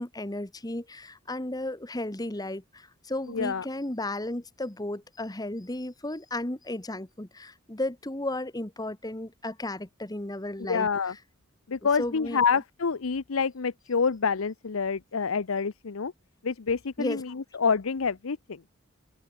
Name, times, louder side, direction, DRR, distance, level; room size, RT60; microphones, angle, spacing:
voice 1, 0.0-10.9 12.0-12.4 17.0-17.2, left 1 dB, 20° left, 1.4 m, -34 dB
voice 2, 3.3-3.6 10.6-11.1 11.7-16.1 16.4-18.6, left 5 dB, 85° left, 0.7 m, -27 dB
head